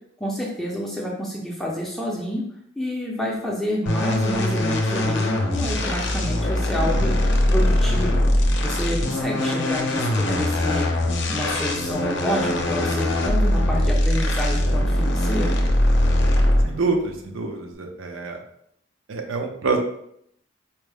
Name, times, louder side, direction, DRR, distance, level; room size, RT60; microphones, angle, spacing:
voice 1, 0.2-2.4 2.8-8.2 8.6-10.9 11.3-15.6, equal, ahead, -3 dB, 0.4 m, -29 dB
sound 1, 3.9-16.8, left 1 dB, 60° left, 0.6 m, -21 dB
voice 2, 16.6-18.4 19.1-19.8, right 4 dB, 80° right, 4 dB, 0.6 m, -26 dB
4.4 x 2.0 x 3.3 m, 0.72 s
head